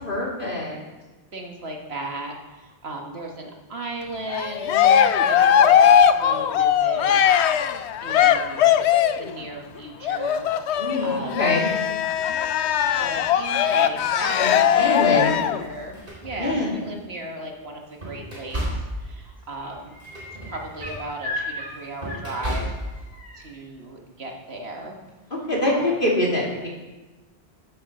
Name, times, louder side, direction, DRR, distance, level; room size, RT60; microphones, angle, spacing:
voice 1, 0.0-0.8 10.8-11.7 14.4-15.4 16.4-16.7 25.5-26.7, left 1 dB, 50° left, -3 dB, 3.2 m, -24 dB
voice 2, 1.3-7.3 8.0-8.7 9.2-11.4 13.0-15.3 15.6-18.6 19.0-20.0 20.5-22.7 23.4-25.0 25.7-25.9, right 2 dB, 70° right, 1 dB, 1.7 m, -36 dB
Cheering, 4.3-9.3 10.0-15.6, left 9 dB, 80° left, 0.9 m, -19 dB
sound 1, 14.9-15.1 15.7-17.1 17.6-23.1, right 1 dB, 50° right, 3.9 m, -34 dB
sound 2, 19.0-19.1 19.4-23.4 25.1-25.2, left 2 dB, 5° right, 2.5 m, -37 dB
9.1 x 8.6 x 6.6 m, 1.2 s
omnidirectional pair, 1.1 m